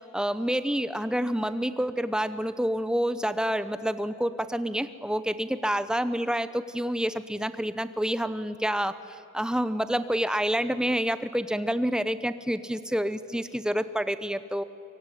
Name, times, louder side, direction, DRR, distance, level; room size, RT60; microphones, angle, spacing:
voice 1, 0.1-9.0 9.3-14.6, equal, 5° right, 13 dB, 0.8 m, -28 dB
24.0 x 23.5 x 9.9 m, 2.8 s
head